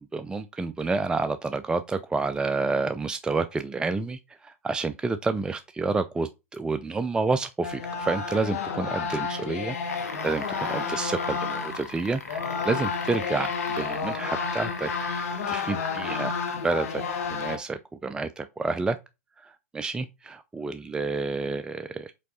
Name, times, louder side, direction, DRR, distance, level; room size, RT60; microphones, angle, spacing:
voice 1, 0.1-16.3 16.6-17.0 17.3-19.0 19.4-22.1, right 3 dB, 10° right, 0.4 m, -29 dB
sound 1, 7.6-11.9 12.2-17.6, left 5 dB, 70° left, 1.5 m, -31 dB
sound 2, 9.7-16.7 17.5-17.6, left 3 dB, 90° left, 1.5 m, -39 dB
5.2 x 4.5 x 4.1 m
hypercardioid pair, 105°, 8 cm